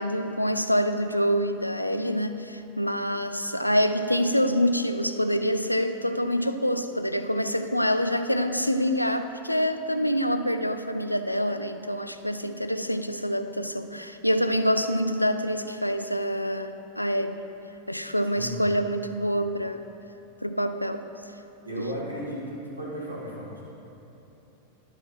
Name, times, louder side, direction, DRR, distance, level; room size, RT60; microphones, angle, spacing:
voice 1, 0.0-17.4 17.9-19.9 20.4-21.1 21.7-21.9, equal, 90° left, 9 dB, 0.4 m, -26 dB
voice 2, 18.4-18.7 21.6-23.6, equal, 85° right, -5 dB, 2.0 m, -35 dB
12.0 x 5.3 x 5.5 m, 3.0 s
figure-of-eight pair, 90°, 0 cm